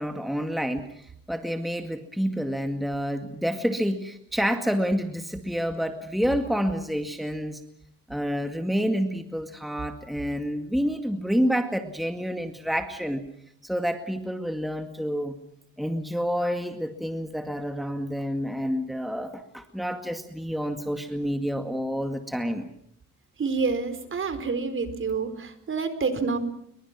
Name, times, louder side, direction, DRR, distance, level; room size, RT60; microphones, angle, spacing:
voice 1, 0.0-7.6 8.1-13.2 13.6-15.4 15.8-22.7, equal, ahead, 6 dB, 2.1 m, -28 dB
voice 2, 23.4-26.4, right 4 dB, 40° right, 11 dB, 4.5 m, -28 dB
29.5 x 23.5 x 6.1 m, 0.70 s
cardioid pair, 90°, 30 cm